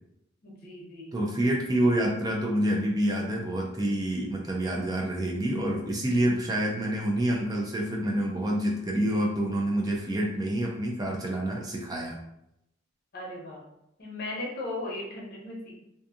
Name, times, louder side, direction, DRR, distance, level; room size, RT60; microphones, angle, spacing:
voice 1, 0.4-1.1 13.1-13.6 14.0-15.8, left 2 dB, 50° left, -4 dB, 0.9 m, -37 dB
voice 2, 1.1-12.2, right 1 dB, 20° right, -1 dB, 0.3 m, -27 dB
2.5 x 2.4 x 2.6 m, 0.81 s
head